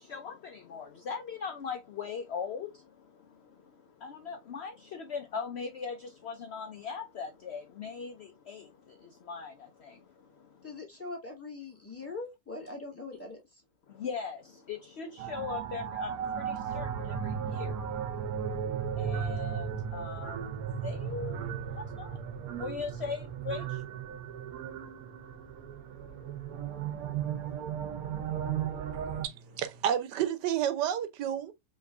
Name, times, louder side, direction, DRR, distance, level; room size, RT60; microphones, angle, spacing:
voice 1, 0.7-2.7 4.0-4.7 5.1-6.0 6.2-8.1 8.5-8.6 9.3-9.5 14.0-14.4 14.7-16.1 16.8-16.9 17.6-17.7 19.0-19.6 19.9-20.4 20.8-21.3 22.6-23.2 23.5-23.6, left 6 dB, 70° left, 0.6 m, -38 dB
voice 2, 10.6-13.6, left 3 dB, 10° left, 1.6 m, -42 dB
sound 1, 15.2-29.3, right 8 dB, 70° right, 1.1 m, -35 dB
voice 3, 28.9-31.5, right 10 dB, 85° right, 1.3 m, -31 dB
5.3 x 3.0 x 2.4 m
omnidirectional pair, 1.8 m